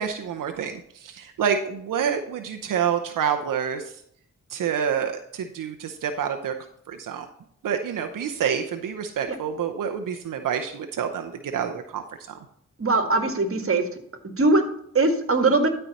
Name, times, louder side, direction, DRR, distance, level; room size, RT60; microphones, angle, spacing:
voice 1, 0.0-3.9 4.5-6.5 6.9-7.3 7.6-12.0 12.3-12.4, right 7 dB, 90° right, 5 dB, 0.7 m, -28 dB
voice 2, 12.8-13.8 14.4-14.6 14.9-15.7, right 3 dB, 45° right, 6 dB, 1.8 m, -20 dB
12.5 x 4.6 x 4.1 m, 0.69 s
cardioid pair, 55°, 31 cm